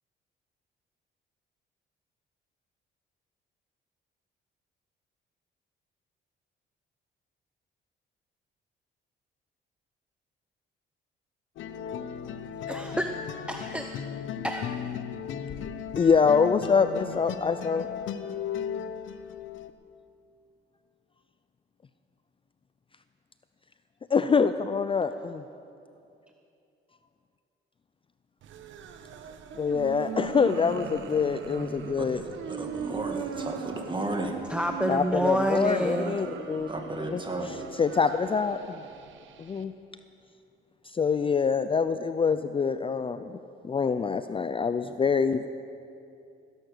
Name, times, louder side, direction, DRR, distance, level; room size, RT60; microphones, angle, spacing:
sound 1, 11.6-19.7, left 8 dB, 75° left, 0.8 m, -36 dB
voice 1, 12.7-13.2 13.5-13.9 14.4-14.7 34.5-36.2, right 1 dB, 5° right, 5 dB, 0.7 m, -28 dB
voice 2, 15.9-17.9 24.1-25.4 29.6-32.2 34.9-36.7 37.1-37.2 37.8-38.8 39.4-39.7 40.9-43.4 43.6-45.5, left 5 dB, 25° left, 11 dB, 0.4 m, -25 dB
sound 2, 28.4-39.6, right 7 dB, 75° right, 1.0 m, -39 dB
voice 3, 31.8-34.4 36.7-37.6, right 2 dB, 25° right, 3 dB, 2.1 m, -34 dB
17.0 x 11.0 x 6.7 m, 2.6 s
cardioid pair, 90°, 20 cm